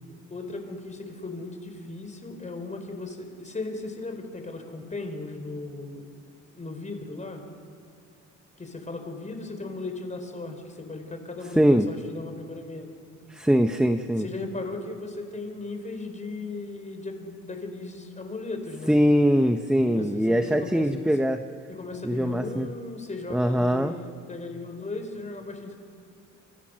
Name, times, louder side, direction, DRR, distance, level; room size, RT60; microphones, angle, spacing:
voice 1, 0.3-6.0 6.5-7.4 8.6-12.9 14.2-18.9 19.8-21.0 21.7-25.8, left 3 dB, 25° left, 5 dB, 4.5 m, -37 dB
voice 2, 11.6-11.9 13.3-14.3 18.9-21.4 22.0-22.7 23.3-23.9, equal, 5° right, 7 dB, 0.9 m, -22 dB
27.5 x 27.0 x 6.4 m, 2.2 s
cardioid pair, 105°, 30 cm